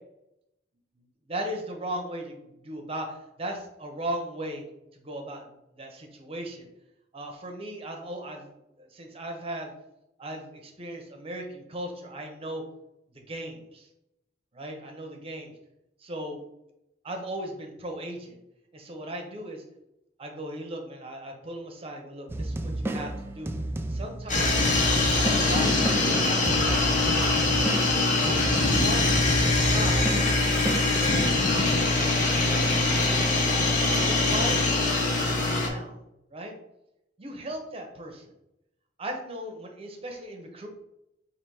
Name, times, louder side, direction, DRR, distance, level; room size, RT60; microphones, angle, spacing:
voice 1, 1.3-4.6 4.9-6.7 7.1-9.7 10.2-12.6 13.1-13.9 14.5-15.5 16.0-16.4 17.0-18.4 18.7-19.6 20.2-23.5 23.9-24.7 25.4-27.6 28.0-30.1 30.9-33.6 34.0-36.0 36.3-36.5 37.2-38.3 39.0-40.7, right 1 dB, 30° right, 3 dB, 0.8 m, -37 dB
sound 1, 22.3-31.4, right 1 dB, 15° right, 0.3 m, -32 dB
sound 2, 24.3-35.7, left 2 dB, 45° left, 1.1 m, -23 dB
4.1 x 2.7 x 4.7 m, 0.87 s
head